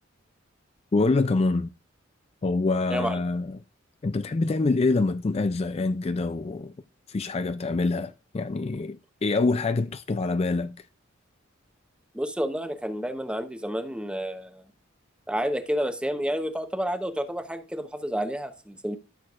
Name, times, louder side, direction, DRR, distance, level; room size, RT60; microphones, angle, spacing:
voice 1, 0.9-1.7 2.4-3.6 4.0-6.7 7.1-10.8, left 3 dB, 30° left, 0.4 m, -25 dB
voice 2, 12.1-14.6 15.3-19.0, equal, 5° right, 0.9 m, -30 dB
13.5 x 6.6 x 2.5 m
head